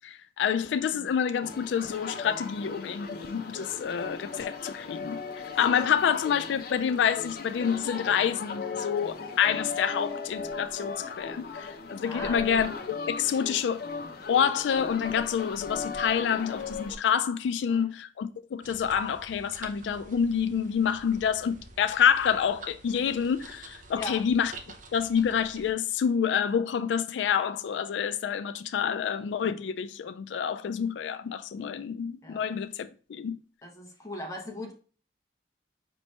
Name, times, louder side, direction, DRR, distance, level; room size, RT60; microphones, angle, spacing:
voice 1, 0.0-5.2 5.6-13.8 14.3-24.5 24.9-33.4, left 7 dB, 90° left, 0.3 m, -28 dB
sound 1, 1.4-17.0, left 4 dB, 55° left, 0.6 m, -37 dB
voice 2, 12.0-12.4 17.7-17.9 23.9-24.3 32.2-32.6 33.6-34.7, left 1 dB, 20° left, 1.0 m, -39 dB
sound 2, 18.6-25.7, right 3 dB, 50° right, 0.6 m, -48 dB
5.2 x 2.9 x 3.2 m
head